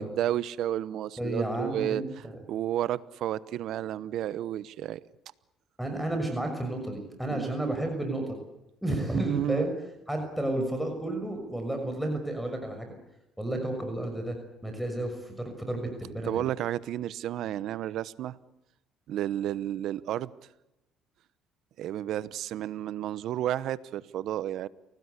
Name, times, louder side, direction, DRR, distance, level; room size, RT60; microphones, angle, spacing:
voice 1, 0.0-5.0 7.3-7.5 9.1-9.7 16.2-18.4 19.1-20.3 21.8-24.7, right 12 dB, 70° right, 1.0 m, -32 dB
voice 2, 1.2-2.4 5.8-8.4 8.8-9.7 10.1-12.9 13.4-14.4 14.6-16.5, right 1 dB, ahead, 6.2 m, -32 dB
29.5 x 18.5 x 8.3 m
supercardioid pair, 80°, 0 cm